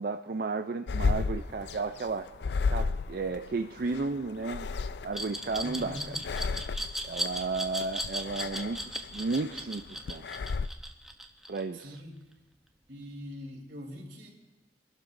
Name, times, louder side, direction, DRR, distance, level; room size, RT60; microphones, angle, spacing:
voice 1, 0.0-2.3 2.7-4.7 5.0-6.0 7.0-10.3 11.5-12.0, right 3 dB, 55° right, 7 dB, 0.4 m, -33 dB
sound 1, 0.9-10.7, left 4 dB, 65° left, 0.4 m, -34 dB
Glass, 5.1-12.0, right 1 dB, ahead, 0.8 m, -36 dB
voice 2, 5.6-6.2 11.7-12.2 12.9-14.3, equal, 80° right, -1 dB, 3.5 m, -42 dB
24.0 x 12.0 x 2.6 m, 1.1 s
head